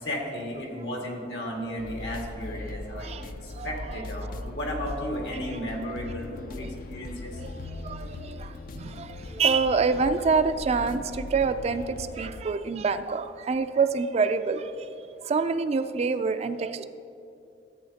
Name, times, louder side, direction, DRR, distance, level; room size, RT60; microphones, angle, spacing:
voice 1, 0.0-7.3, equal, 85° left, -1 dB, 1.8 m, -34 dB
sound 1, 1.8-12.5, left 2 dB, 50° left, 0.4 m, -39 dB
voice 2, 2.9-3.3 3.5-3.8 7.4-15.0 15.2-16.8, right 5 dB, 35° right, 10 dB, 0.3 m, -27 dB
14.0 x 8.3 x 2.8 m, 2.6 s
head